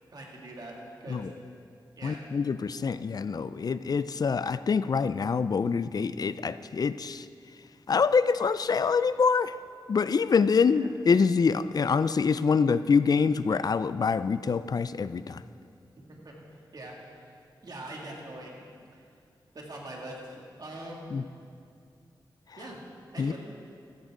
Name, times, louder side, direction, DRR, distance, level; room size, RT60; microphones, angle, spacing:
voice 1, 0.1-1.3 2.0-2.2 10.7-10.9 16.1-16.3 16.7-16.9 17.6-18.7 19.5-21.1 22.6-22.8 23.1-23.4, right 1 dB, 55° right, -2 dB, 2.4 m, -42 dB
voice 2, 2.0-7.3 7.9-9.5 9.9-15.4 21.1-21.2 23.2-23.3, left 5 dB, 50° left, 14 dB, 0.4 m, -25 dB
15.5 x 13.5 x 3.8 m, 2.4 s
wide cardioid pair, 100°, 8 cm